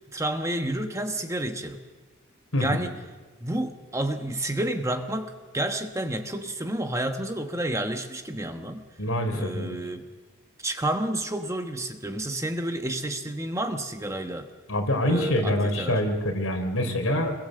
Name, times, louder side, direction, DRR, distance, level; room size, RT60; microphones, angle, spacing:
voice 1, 0.1-1.8 2.6-2.9 3.4-8.8 9.3-10.1 10.6-14.5 15.0-16.0, right 1 dB, 15° right, 6 dB, 1.2 m, -30 dB
voice 2, 9.0-9.8 14.7-17.3, left 1 dB, 75° left, 4 dB, 4.0 m, -25 dB
26.0 x 22.0 x 7.8 m, 1.3 s
head